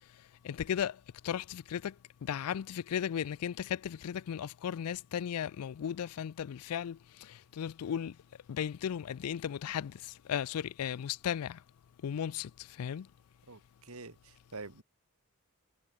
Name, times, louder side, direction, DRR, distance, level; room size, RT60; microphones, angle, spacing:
voice 1, 0.4-1.9 2.2-8.2 8.5-11.6 12.0-13.1, left 9 dB, 85° left, 0.4 m, -36 dB
voice 2, 13.5-14.8, right 3 dB, 75° right, 1.9 m, -47 dB
head